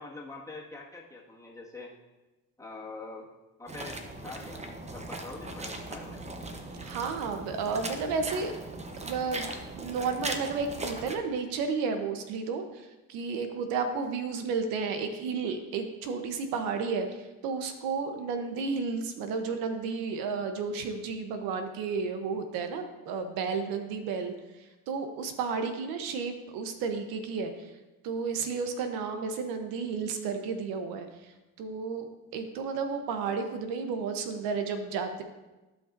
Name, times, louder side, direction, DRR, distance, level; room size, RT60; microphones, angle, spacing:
voice 1, 0.0-1.9 2.6-3.3 3.6-4.6 4.9-6.2, left 3 dB, 10° left, -4 dB, 1.7 m, -44 dB
sound 1, 3.7-11.2, right 2 dB, 20° right, 0.8 m, -39 dB
voice 2, 6.8-8.5 9.0-24.3 24.6-27.7 28.0-35.2, right 5 dB, 85° right, 7 dB, 0.9 m, -32 dB
14.5 x 5.3 x 2.6 m, 1.1 s
cardioid pair, 100°, 34 cm